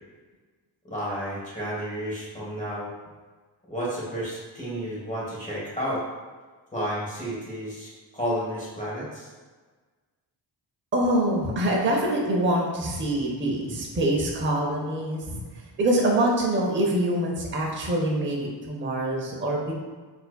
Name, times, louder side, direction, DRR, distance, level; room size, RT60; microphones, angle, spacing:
voice 1, 0.8-2.9 3.7-6.0 6.7-9.3, equal, 15° left, -6 dB, 1.1 m, -31 dB
voice 2, 10.9-15.4 15.8-19.7, right 1 dB, 25° right, -1 dB, 0.6 m, -25 dB
4.2 x 2.6 x 2.2 m, 1.4 s
cardioid pair, 95°, 45 cm